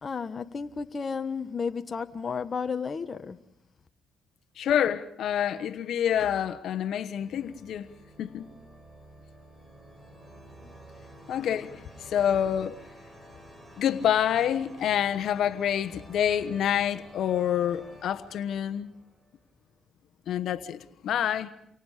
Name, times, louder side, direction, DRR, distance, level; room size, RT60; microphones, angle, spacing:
voice 1, 0.0-3.4 10.6-10.8, left 5 dB, 40° left, 1.2 m, -33 dB
voice 2, 4.6-7.9 8.2-8.5 11.3-12.8 13.8-18.9 20.3-21.5, left 9 dB, 70° left, 1.2 m, -27 dB
sound 1, 5.2-6.4 7.1-19.7, right 1 dB, 20° right, 6.6 m, -51 dB
30.0 x 24.5 x 5.0 m
cardioid pair, 90°, 0 cm